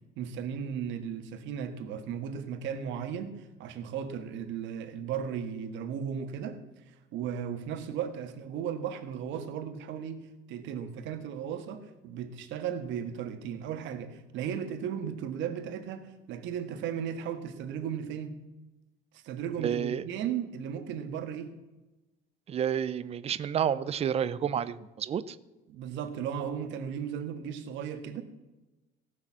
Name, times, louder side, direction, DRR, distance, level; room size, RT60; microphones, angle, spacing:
voice 1, 0.2-18.4 19.1-21.5 25.7-28.2, right 8 dB, 85° right, 1.6 m, -36 dB
voice 2, 19.6-20.0 22.5-25.4, right 9 dB, 35° right, 0.5 m, -30 dB
17.5 x 6.4 x 7.3 m
cardioid pair, 165°, 19 cm